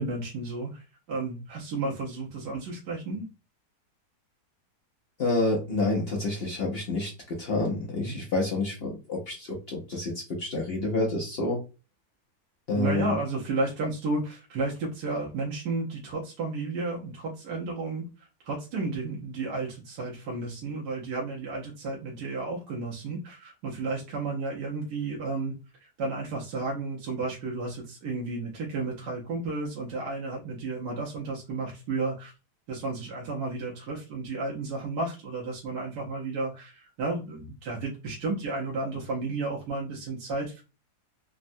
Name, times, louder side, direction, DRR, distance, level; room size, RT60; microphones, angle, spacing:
voice 1, 0.0-3.2 8.0-8.1 12.7-32.3 32.7-40.6, right 3 dB, 85° right, -3 dB, 1.3 m, -32 dB
voice 2, 5.2-11.6 12.7-13.2, left 2 dB, 60° left, -2 dB, 0.6 m, -28 dB
3.4 x 2.1 x 2.5 m, 0.31 s
omnidirectional pair, 1.7 m